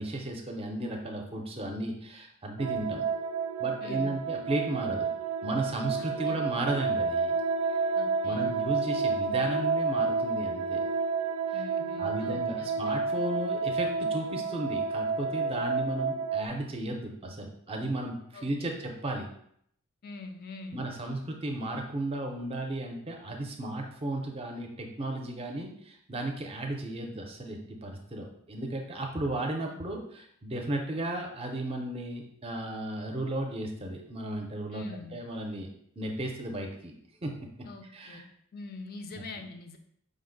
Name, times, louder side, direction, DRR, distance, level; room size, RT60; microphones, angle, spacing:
voice 1, 0.0-3.0 3.6-5.1 5.4-7.3 8.2-10.8 11.5-11.6 12.0-18.1 18.4-19.3 20.7-34.8 35.1-35.7 36.0-36.9 37.2-37.3 37.9-38.2, right 1 dB, 25° right, 2 dB, 0.6 m, -34 dB
sound 1, 2.6-16.5, right 4 dB, 90° right, 0.3 m, -30 dB
voice 2, 3.8-4.2 6.0-6.4 7.9-8.5 11.5-13.0 18.3-18.7 20.0-20.8 29.7-29.8 34.7-35.2 37.6-38.3 38.5-39.8, left 3 dB, 45° left, 6 dB, 0.5 m, -44 dB
5.1 x 2.1 x 3.8 m, 0.68 s
head